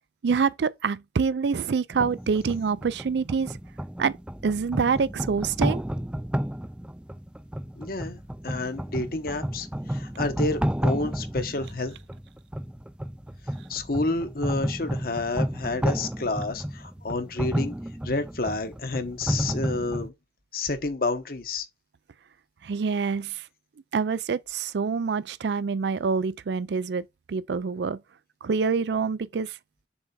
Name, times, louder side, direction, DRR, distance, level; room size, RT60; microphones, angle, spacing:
voice 1, 0.2-3.6 4.0-4.1 4.4-5.8 22.6-23.5 23.9-28.0 28.4-29.6, right 5 dB, 75° right, 0.4 m, -26 dB
sound 1, 1.9-20.1, equal, 5° right, 0.4 m, -31 dB
voice 2, 7.8-12.0 13.7-17.7 18.0-20.1 20.5-21.7, left 2 dB, 55° left, 1.1 m, -30 dB
7.1 x 3.4 x 4.2 m
head